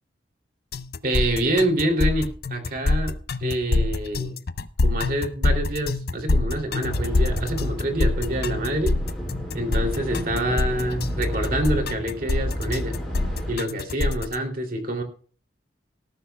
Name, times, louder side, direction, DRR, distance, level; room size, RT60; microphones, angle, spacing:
sound 1, 0.7-14.3, left 2 dB, 55° left, 0.6 m, -25 dB
voice 1, 1.0-4.4 4.8-9.0 9.5-13.0 13.5-15.0, right 1 dB, 50° right, 3 dB, 2.8 m, -26 dB
sound 2, 6.8-13.6, equal, ahead, 5.7 m, -31 dB
18.5 x 14.0 x 2.3 m, 0.44 s
head